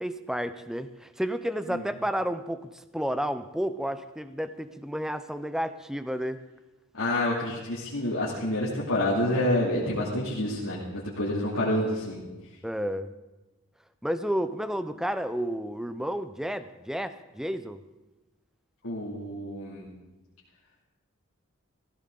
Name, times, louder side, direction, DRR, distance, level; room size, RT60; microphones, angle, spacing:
voice 1, 0.0-6.4 12.6-13.1 14.0-17.8, equal, ahead, 11 dB, 0.5 m, -31 dB
voice 2, 7.0-12.2 18.8-19.9, left 1 dB, 80° left, -8 dB, 2.7 m, -28 dB
15.5 x 15.5 x 3.9 m, 1.1 s
head